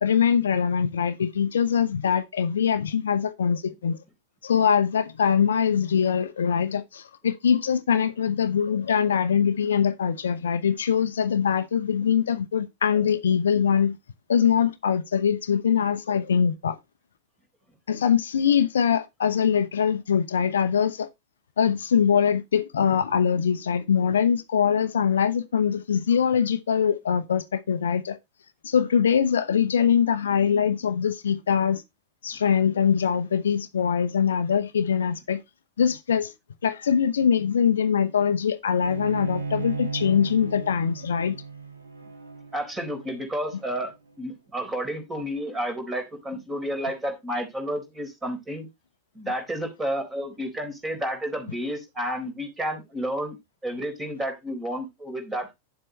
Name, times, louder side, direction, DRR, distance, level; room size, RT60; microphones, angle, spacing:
voice 1, 0.0-4.0 4.4-14.0 14.3-16.8 17.9-21.1 21.6-28.2 28.6-31.8 32.2-35.4 35.8-36.3 36.6-41.4, left 7 dB, 65° left, 0.7 m, -23 dB
Bowed string instrument, 38.8-44.1, right 4 dB, 75° right, 1.9 m, -36 dB
voice 2, 42.5-48.7 49.1-53.4 53.6-55.5, equal, 15° right, 4.0 m, -31 dB
10.5 x 7.6 x 3.2 m
figure-of-eight pair, 90°, 0 cm